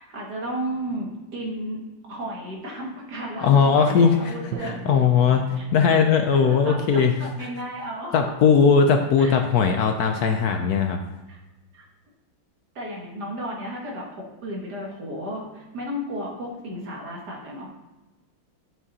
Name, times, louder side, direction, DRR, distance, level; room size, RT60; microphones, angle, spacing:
voice 1, 0.0-1.8 2.1-4.7 5.6-5.7 6.2-8.3 9.2-9.3 11.3-11.4 11.7-11.8 12.8-17.7, equal, 60° right, -2 dB, 2.2 m, -33 dB
voice 2, 3.4-7.1 7.4-7.5 8.1-11.0, left 6 dB, 70° left, 5 dB, 1.0 m, -19 dB
Drum, 4.5-8.3, right 7 dB, 75° right, 1.2 m, -41 dB
10.5 x 5.8 x 4.1 m, 1.1 s
omnidirectional pair, 2.0 m